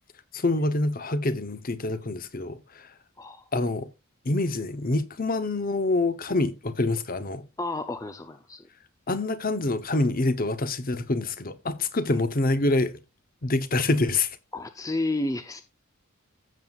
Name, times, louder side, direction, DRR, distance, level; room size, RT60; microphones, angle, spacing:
voice 1, 0.3-2.9 3.5-3.9 4.2-7.4 9.1-12.9 13.4-14.4, left 2 dB, 40° left, 0.9 m, -26 dB
voice 2, 3.2-3.5 7.6-8.7 14.5-15.6, left 2 dB, 15° left, 0.6 m, -31 dB
15.5 x 7.3 x 2.4 m
head